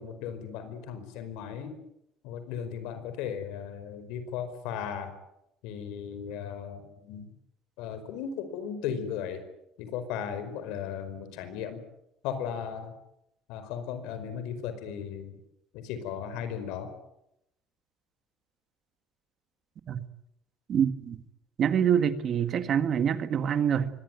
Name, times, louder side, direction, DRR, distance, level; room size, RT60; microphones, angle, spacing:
voice 1, 0.0-1.7 2.2-5.1 5.6-7.3 7.8-9.4 9.8-11.8 12.2-12.9 13.5-15.3 15.7-16.9, left 8 dB, 85° left, 10 dB, 5.0 m, -36 dB
voice 2, 20.7-21.2 21.6-23.9, right 8 dB, 45° right, 11 dB, 1.7 m, -25 dB
24.0 x 19.0 x 9.2 m, 0.83 s
cardioid pair, 130°, 0 cm